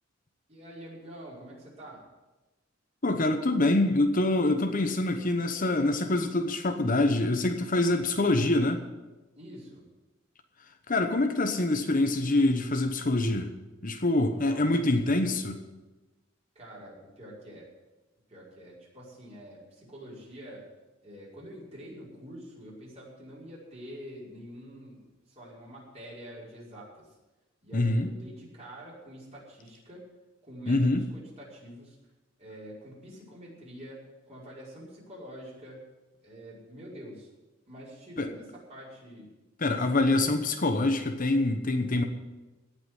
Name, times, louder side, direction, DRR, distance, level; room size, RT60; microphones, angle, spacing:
voice 1, 0.5-2.0 9.3-9.8 14.3-14.8 16.6-17.7 18.3-20.6 21.0-27.2 27.6-30.0 30.4-32.0 32.4-34.0 34.3-35.8 36.2-37.3 37.7-39.3 39.7-40.1, equal, 35° right, -6 dB, 5.4 m, -46 dB
voice 2, 3.0-8.8 10.9-13.5 13.8-15.6 27.7-28.1 30.7-31.1 38.2-38.3 39.6-42.0, left 2 dB, 45° left, 6 dB, 1.0 m, -25 dB
17.5 x 5.9 x 9.9 m, 1.1 s
head